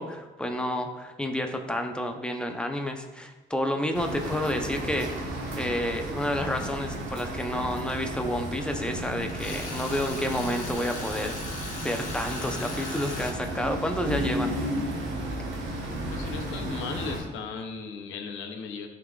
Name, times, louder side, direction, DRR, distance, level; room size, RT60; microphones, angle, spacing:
voice 1, 0.0-5.3 5.5-11.5 11.8-14.6, left 1 dB, 5° left, 4 dB, 0.7 m, -30 dB
sound 1, 3.9-17.2, right 1 dB, 85° right, 1.3 m, -34 dB
Tools, 9.3-13.4, left 2 dB, 40° left, 1.4 m, -38 dB
voice 2, 16.1-18.9, left 5 dB, 85° left, 5 dB, 0.7 m, -36 dB
11.0 x 3.8 x 2.4 m, 1.1 s
cardioid pair, 90°, 20 cm